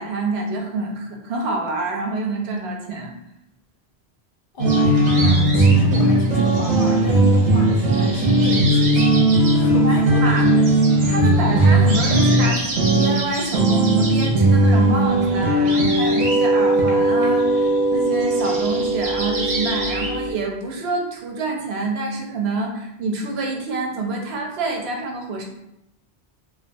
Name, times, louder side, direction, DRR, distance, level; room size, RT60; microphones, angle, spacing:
voice 1, 0.0-3.1 9.7-10.5 11.1-25.4, right 2 dB, 80° right, 1 dB, 0.8 m, -27 dB
voice 2, 4.5-10.8, left 1 dB, 65° left, 0 dB, 0.7 m, -33 dB
sound 1, 4.6-20.3, right 1 dB, 50° right, 0.6 m, -18 dB
2.3 x 2.3 x 2.5 m, 0.84 s
omnidirectional pair, 1.0 m